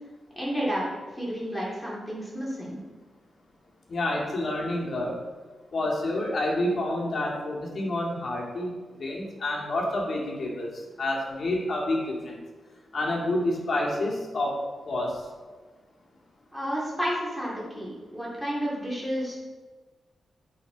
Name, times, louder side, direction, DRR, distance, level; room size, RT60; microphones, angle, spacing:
voice 1, 0.4-0.8 1.1-2.8 16.5-19.3, equal, ahead, -6 dB, 2.5 m, -31 dB
voice 2, 3.9-5.2 5.7-10.7 11.0-12.4 12.9-14.6 14.9-15.2, left 1 dB, 50° left, -3 dB, 2.1 m, -28 dB
8.9 x 5.9 x 3.9 m, 1.3 s
wide cardioid pair, 120°, 0 cm